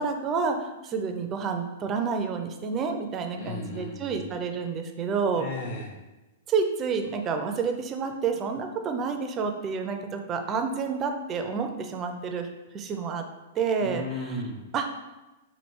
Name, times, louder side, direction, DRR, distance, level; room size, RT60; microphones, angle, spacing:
voice 1, 0.0-5.5 6.5-12.5 12.7-13.2 13.5-14.0 14.7-14.9, right 5 dB, 25° right, 5 dB, 0.4 m, -29 dB
voice 2, 3.4-4.3 5.4-6.0 13.8-14.6, left 2 dB, 60° left, -1 dB, 1.0 m, -35 dB
3.2 x 2.5 x 4.4 m, 1.1 s
hypercardioid pair, 145°, 0 cm